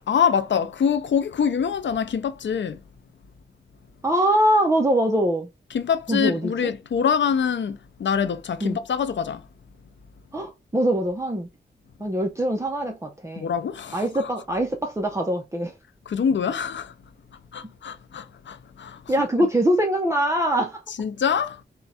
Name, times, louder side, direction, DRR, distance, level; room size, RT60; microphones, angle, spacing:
voice 1, 0.1-2.8 5.7-9.5 13.4-14.3 16.1-16.9 17.3-19.0 19.4-19.5 21.0-21.6, left 7 dB, 85° left, 0.5 m, -25 dB
voice 2, 4.0-5.5 6.1-6.7 8.6-8.8 10.3-11.5 12.0-13.5 13.9-15.8 19.1-20.8, right 1 dB, 15° right, 0.6 m, -23 dB
4.4 x 2.2 x 4.1 m
wide cardioid pair, 90°, 18 cm